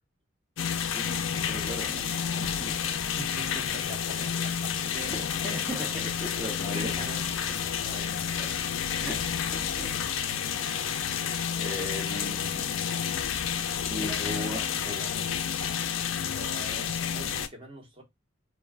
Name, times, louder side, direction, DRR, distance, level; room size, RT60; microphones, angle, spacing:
sound 1, 0.6-17.5, left 8 dB, 90° left, 0.4 m, -30 dB
voice 1, 0.9-3.0 4.9-7.1 7.5-7.6 8.1-8.5 8.9-10.0 10.2-10.9 11.6-12.6 13.8-15.1, equal, 10° right, 0.6 m, -39 dB
voice 2, 3.2-5.3 6.6-8.9 12.1-12.6 13.0-13.2 13.9-15.4 16.4-18.0, right 1 dB, 30° right, 0.9 m, -45 dB
2.2 x 2.2 x 3.3 m
head